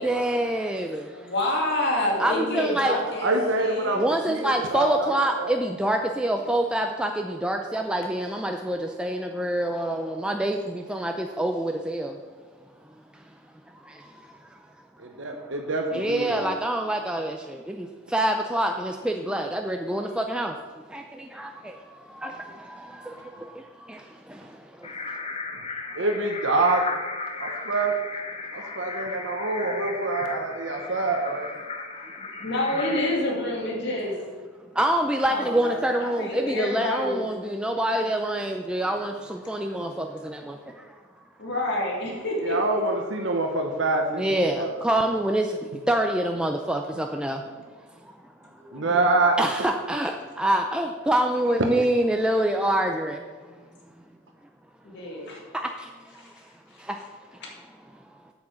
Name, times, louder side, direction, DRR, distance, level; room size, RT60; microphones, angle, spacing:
voice 1, 0.0-1.3 2.2-3.0 3.9-12.2 13.1-13.2 13.8-14.4 15.3-15.5 15.9-20.6 20.9-25.2 28.6-29.3 30.7-30.9 34.7-40.9 44.2-45.6 45.9-47.4 48.0-48.1 48.7-48.8 49.4-53.2 55.5-56.3 56.8-57.1 57.9-58.0, right 1 dB, 5° right, 3 dB, 0.4 m, -27 dB
voice 2, 1.1-4.0 32.2-34.1 35.3-37.4 38.8-38.9 41.4-42.8 48.6-49.2 54.8-55.4, left 1 dB, 55° left, -2 dB, 2.3 m, -28 dB
voice 3, 3.2-5.5 15.0-16.4 25.9-26.8 27.4-27.9 28.5-31.5 42.4-44.7 48.7-49.7, right 2 dB, 60° right, 3 dB, 0.9 m, -26 dB
sound 1, 24.8-33.1, left 4 dB, 30° left, 0.8 m, -36 dB
8.4 x 7.2 x 6.3 m, 1.5 s
head